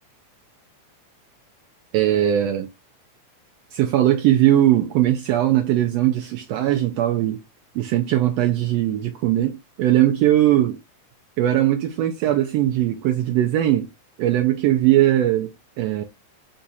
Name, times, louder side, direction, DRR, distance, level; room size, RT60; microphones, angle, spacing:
voice 1, 1.9-2.7 3.7-7.4 7.7-10.8 11.4-13.9 14.2-16.0, right 13 dB, 80° right, 1.5 m, -20 dB
4.8 x 2.3 x 4.0 m
omnidirectional pair, 3.4 m